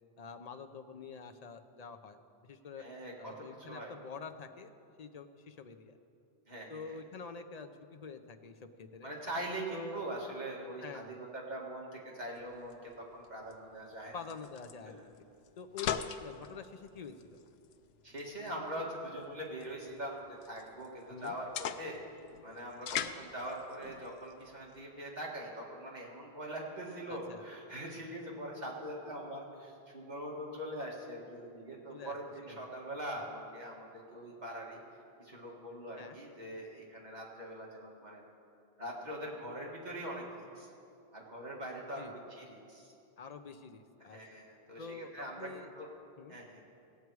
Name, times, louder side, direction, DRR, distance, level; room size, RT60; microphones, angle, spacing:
voice 1, 0.2-2.2 2.4-2.9 3.2-4.7 5.0-5.9 6.7-9.1 9.7-10.0 10.8-11.1 13.5-13.6 14.1-15.1 15.6-15.9 16.2-17.4 21.1-21.3 27.1-27.4 31.9-32.1 32.5-32.6 36.0-36.2 42.0-42.1 43.2-44.4 44.8-45.7 46.2-46.4, left 5 dB, 45° left, 7 dB, 0.7 m, -47 dB
voice 2, 2.8-3.9 6.5-7.0 9.0-14.1 14.9-15.1 18.0-22.0 22.4-34.8 35.2-38.2 38.8-40.7 41.1-42.9 44.0-45.9 46.3-46.6, right 1 dB, 45° right, -3 dB, 2.0 m, -42 dB
sound 1, 12.4-24.8, left 8 dB, 75° left, 0.8 m, -43 dB
16.5 x 8.2 x 4.7 m, 2.6 s
omnidirectional pair, 1.1 m